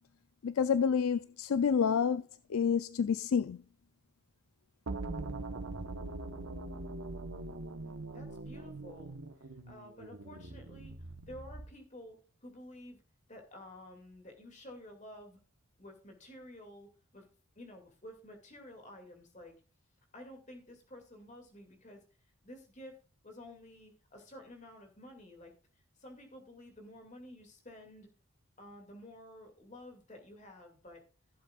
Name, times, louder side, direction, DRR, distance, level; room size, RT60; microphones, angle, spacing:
voice 1, 0.4-2.2 2.5-3.6, left 6 dB, 75° left, 0.4 m, -28 dB
sound 1, 4.9-11.8, right 2 dB, 75° right, 1.1 m, -42 dB
voice 2, 7.8-11.0 11.3-13.0 13.3-15.4 15.8-17.3 17.6-19.6 20.1-22.0 22.4-23.0 23.2-28.1 28.6-31.0, left 1 dB, 35° left, 2.3 m, -52 dB
15.0 x 7.6 x 2.4 m
head